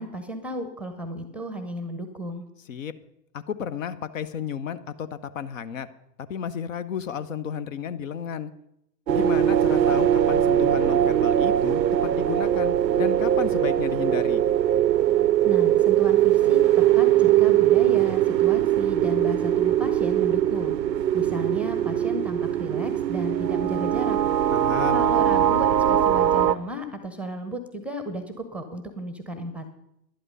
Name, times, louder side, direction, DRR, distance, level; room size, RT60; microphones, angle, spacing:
voice 1, 0.0-2.5 15.4-16.6 16.9-20.7 21.1-24.2 24.9-29.7, equal, 5° right, 9 dB, 0.7 m, -33 dB
voice 2, 3.3-5.9 6.3-8.5 9.1-14.4 24.5-25.1, left 8 dB, 50° left, 14 dB, 0.8 m, -32 dB
sound 1, 9.1-26.5, right 11 dB, 85° right, 0.6 m, -21 dB
11.5 x 11.0 x 5.3 m, 0.80 s
figure-of-eight pair, 105°, 50 cm